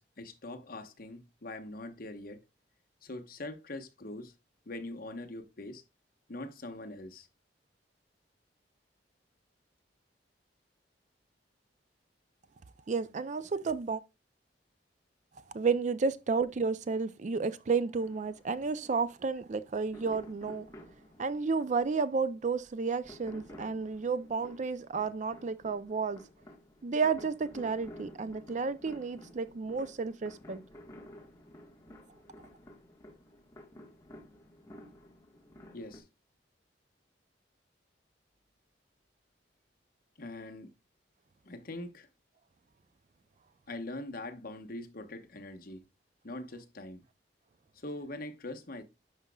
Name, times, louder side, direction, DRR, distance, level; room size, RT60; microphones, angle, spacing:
voice 1, 0.0-2.4 3.0-4.3 4.7-5.8 6.3-7.3 35.7-36.0 40.2-40.7 41.4-42.1 43.7-45.8 46.2-47.0 47.7-48.8, left 2 dB, 55° left, 1.0 m, -42 dB
voice 2, 12.9-14.0 15.5-20.7 21.2-26.2 26.8-30.6, right 4 dB, 45° right, 0.4 m, -32 dB
sound 1, 18.0-36.0, equal, 20° left, 1.3 m, -52 dB
11.0 x 5.1 x 2.2 m
head